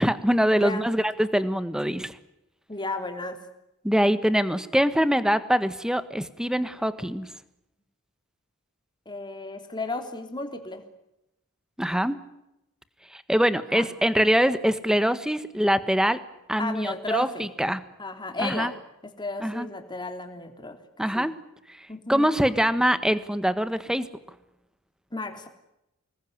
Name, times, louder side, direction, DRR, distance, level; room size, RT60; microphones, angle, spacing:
voice 1, 0.0-2.2 3.8-7.3 11.8-12.2 13.1-16.2 16.5-17.8 18.4-18.7 19.4-19.7 21.0-21.3 21.8-24.0, equal, 5° right, 12 dB, 1.4 m, -24 dB
voice 2, 0.5-0.9 2.7-3.4 9.0-10.8 13.6-13.9 16.6-17.5 18.0-18.7 19.0-20.8 21.1-21.3 21.9-22.3 25.1-25.5, left 2 dB, 20° left, 6 dB, 3.3 m, -33 dB
26.5 x 20.5 x 9.7 m, 0.87 s
head